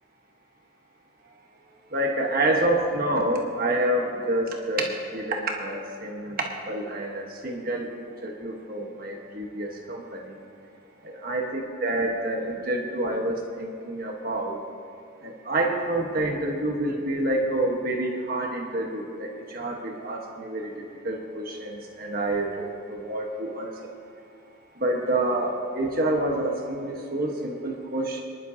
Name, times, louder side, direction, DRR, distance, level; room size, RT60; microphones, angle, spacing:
voice 1, 1.9-10.4 11.0-14.6 15.2-23.9 24.8-28.2, right 1 dB, 45° right, 1 dB, 1.3 m, -28 dB
25.0 x 11.0 x 2.8 m, 2.7 s
head